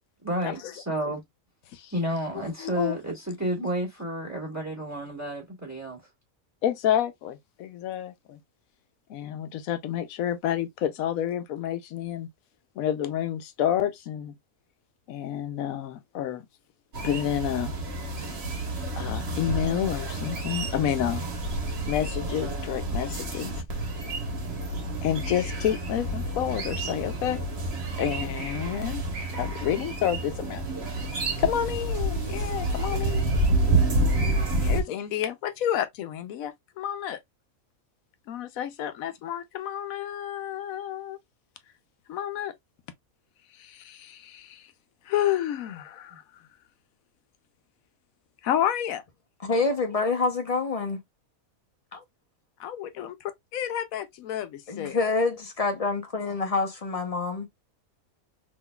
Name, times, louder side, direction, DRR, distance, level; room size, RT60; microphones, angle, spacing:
voice 1, 0.2-1.2 1.9-6.0, right 1 dB, 10° right, 1.4 m, -31 dB
voice 2, 2.6-3.0 6.6-8.4 9.1-12.3 12.8-14.3 15.1-16.4 17.0-17.7 19.0-21.2 21.9-23.5 25.0-27.4 28.0-29.0 29.3-30.6 31.0-31.1 31.4-33.3 34.6-37.2 38.3-41.2 42.1-42.5 43.6-44.7 45.1-46.2 48.4-49.0 52.6-55.0, left 10 dB, 75° left, 1.0 m, -29 dB
sound 1, 16.9-34.8, right 2 dB, 50° right, 1.2 m, -29 dB
voice 3, 49.4-51.0 51.9-52.0 54.7-57.5, left 3 dB, 35° left, 0.6 m, -27 dB
3.7 x 2.9 x 2.2 m
omnidirectional pair, 1.5 m